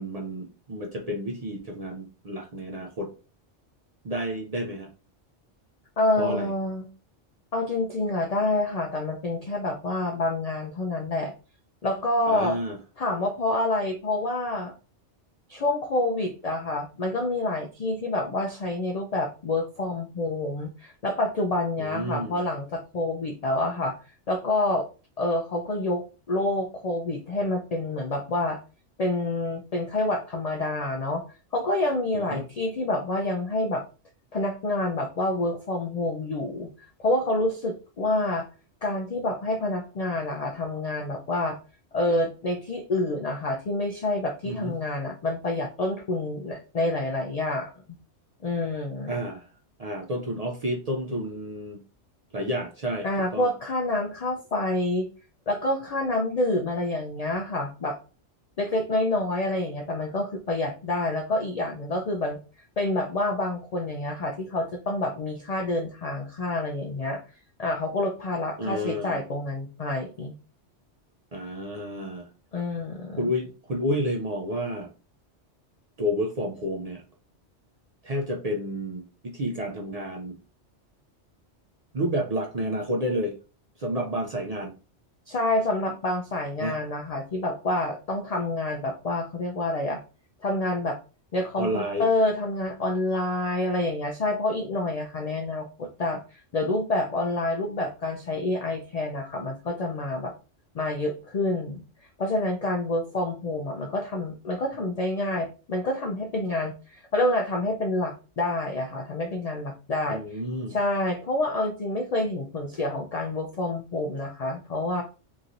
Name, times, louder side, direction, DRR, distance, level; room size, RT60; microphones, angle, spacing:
voice 1, 0.0-3.1 4.0-4.9 6.2-6.5 12.3-12.8 21.8-22.4 32.1-32.5 44.4-44.7 49.1-49.5 49.8-51.8 52.3-53.1 53.3-53.5 68.6-69.2 71.3-72.3 73.2-74.9 76.0-77.0 78.0-80.4 81.9-83.4 83.8-84.7 86.6-86.7 91.6-92.1 110.1-110.8, equal, 50° right, 0 dB, 0.4 m, -30 dB
voice 2, 6.0-6.9 7.5-11.3 11.8-12.6 13.0-14.7 15.5-23.9 24.3-24.9 25.2-28.6 29.0-31.2 31.5-33.8 34.3-36.7 37.0-38.5 38.8-41.6 41.9-47.7 48.4-49.1 53.0-55.1 55.5-58.0 58.6-62.4 62.8-67.2 67.6-70.3 72.5-73.3 85.3-90.0 90.4-91.0 91.3-100.3 100.7-101.8 102.2-110.4 110.7-115.0, left 2 dB, 65° left, 3 dB, 0.4 m, -28 dB
3.0 x 2.7 x 2.5 m, 0.34 s
omnidirectional pair, 1.2 m